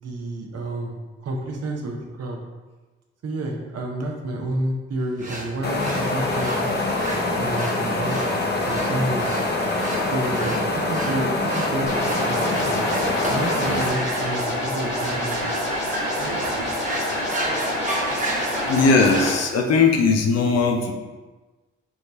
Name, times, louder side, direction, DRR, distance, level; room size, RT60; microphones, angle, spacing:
voice 1, 0.0-2.4 3.2-6.8 7.4-9.3 10.1-12.9 13.3-15.5 16.1-16.7, right 1 dB, 55° right, 1 dB, 0.9 m, -30 dB
sound 1, 5.2-19.5, right 1 dB, 25° right, 1.2 m, -33 dB
sound 2, 5.6-13.9, left 2 dB, 35° left, 1.0 m, -25 dB
sound 3, 11.9-19.3, left 1 dB, 85° left, 1.4 m, -27 dB
voice 2, 18.4-20.9, left 4 dB, 60° left, 3 dB, 0.7 m, -19 dB
3.5 x 3.3 x 4.1 m, 1.2 s
hypercardioid pair, 45°, 30 cm